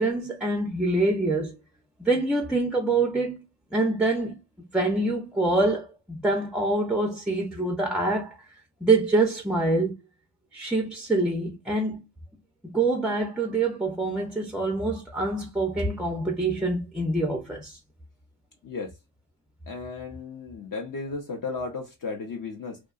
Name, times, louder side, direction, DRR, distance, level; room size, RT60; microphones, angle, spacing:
voice 1, 0.0-1.6 2.0-3.4 3.7-8.4 8.8-9.9 10.5-12.0 12.6-17.8, right 2 dB, ahead, 0.4 m, -25 dB
voice 2, 18.6-19.0 19.7-22.8, left 4 dB, 45° left, 0.6 m, -34 dB
2.7 x 2.2 x 2.2 m
cardioid pair, 100°, 47 cm